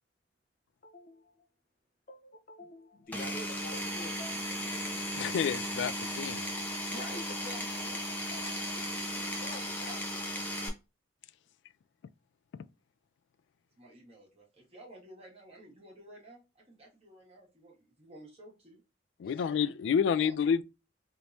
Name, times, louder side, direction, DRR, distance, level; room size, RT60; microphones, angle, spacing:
voice 1, 0.8-1.5 2.1-4.8 6.9-10.2 19.2-19.6, left 1 dB, 50° left, 0.9 m, -48 dB
Power tool, 3.1-10.7, equal, 10° left, 0.7 m, -36 dB
voice 2, 5.1-6.4 19.2-20.6, left 7 dB, 70° left, 0.3 m, -29 dB
voice 3, 13.8-18.8 20.2-20.3, right 1 dB, 30° right, 1.6 m, -54 dB
3.5 x 2.9 x 2.5 m
head